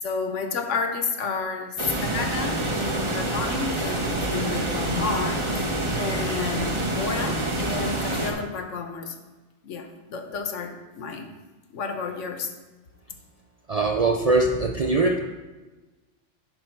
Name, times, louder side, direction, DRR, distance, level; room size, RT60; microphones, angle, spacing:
voice 1, 0.0-9.2 9.6-11.3 11.7-12.5, left 5 dB, 75° left, 6 dB, 1.2 m, -31 dB
sound 1, 1.8-8.3, right 2 dB, 25° right, 0.9 m, -27 dB
voice 2, 13.7-15.2, right 3 dB, 55° right, 3 dB, 0.4 m, -22 dB
10.5 x 4.8 x 4.5 m, 1.2 s
omnidirectional pair, 1.3 m